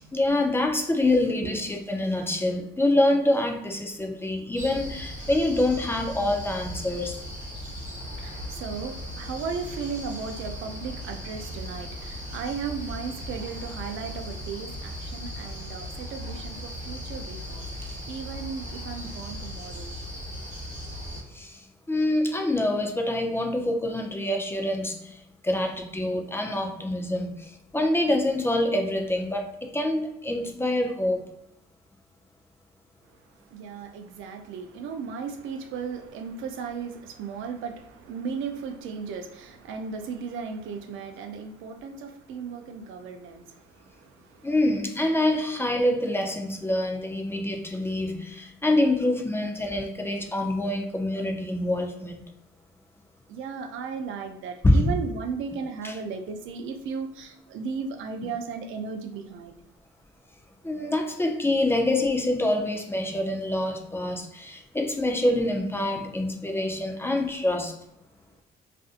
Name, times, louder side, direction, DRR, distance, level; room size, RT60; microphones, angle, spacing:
voice 1, 0.0-7.2 21.3-21.6 21.9-25.2 25.4-31.2 44.4-52.2 54.6-54.9 55.8-55.9 60.6-67.8, left 1 dB, 10° left, 0.4 m, -26 dB
sound 1, 4.6-21.2, equal, 35° right, 1.0 m, -37 dB
voice 2, 7.9-20.0 33.5-44.4 53.3-59.5, right 5 dB, 80° right, 0.4 m, -36 dB
2.5 x 2.5 x 2.4 m
cardioid pair, 90°, 20 cm